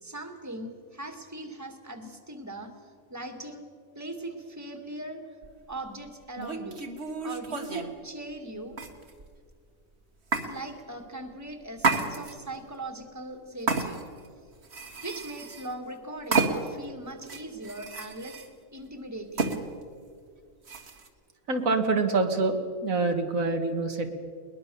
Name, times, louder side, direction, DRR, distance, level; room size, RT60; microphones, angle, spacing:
voice 1, 0.0-3.7 4.0-5.2 5.7-6.8 7.2-8.8 10.4-14.0 15.0-18.4 18.7-19.6, right 1 dB, 10° right, 5 dB, 2.0 m, -40 dB
sound 1, 5.4-5.6 6.4-7.9 8.7-9.4 10.3-10.5 11.8-12.6 13.7-14.3 14.6-15.7 16.3-16.8 17.2-18.5 19.4-19.6 20.7-21.1, right 4 dB, 50° right, 1.9 m, -30 dB
voice 2, 21.5-22.6 22.8-24.1, right 3 dB, 85° right, 5 dB, 2.0 m, -25 dB
21.5 x 20.5 x 7.0 m, 2.1 s
omnidirectional pair, 1.4 m